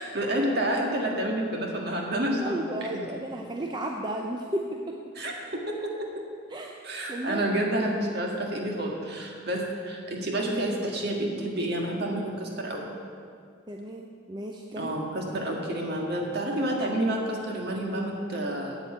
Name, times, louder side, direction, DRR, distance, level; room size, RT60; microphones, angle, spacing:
voice 1, 0.0-3.0 5.1-5.3 5.7-6.1 6.8-12.9 14.7-18.8, right 1 dB, 50° right, 0 dB, 1.7 m, -29 dB
voice 2, 2.4-5.0 6.5-6.8 7.1-7.5 13.7-14.9, right 1 dB, 20° right, 1 dB, 0.5 m, -34 dB
8.2 x 8.1 x 8.7 m, 2.2 s
head